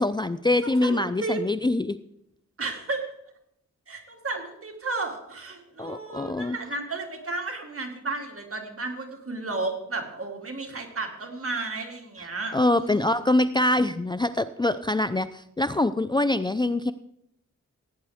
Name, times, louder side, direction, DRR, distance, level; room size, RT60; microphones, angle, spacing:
voice 1, 0.0-2.0 5.8-6.6 12.5-16.9, left 2 dB, 15° left, 13 dB, 0.4 m, -24 dB
voice 2, 0.6-1.4 2.6-3.0 3.9-13.2, right 3 dB, 45° right, 2 dB, 2.6 m, -33 dB
16.5 x 9.3 x 3.6 m, 0.77 s
cardioid pair, 60°, 30 cm